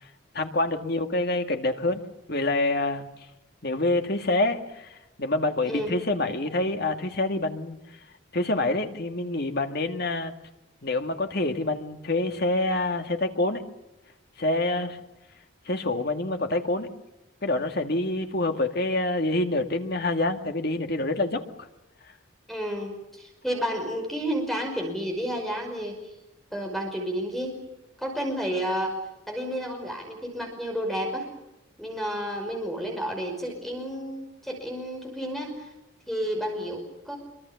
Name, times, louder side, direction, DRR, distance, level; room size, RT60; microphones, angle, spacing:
voice 1, 0.3-2.0 2.3-3.1 3.6-7.8 8.3-10.3 10.8-13.6 14.4-15.0 15.7-16.9 17.4-21.4, left 2 dB, 50° left, 6 dB, 2.1 m, -26 dB
voice 2, 5.7-6.0 22.5-26.1 26.5-27.5 28.0-29.0 29.3-31.3 31.8-35.7 36.1-37.2, equal, ahead, 2 dB, 5.4 m, -31 dB
25.5 x 24.5 x 7.1 m, 0.94 s
head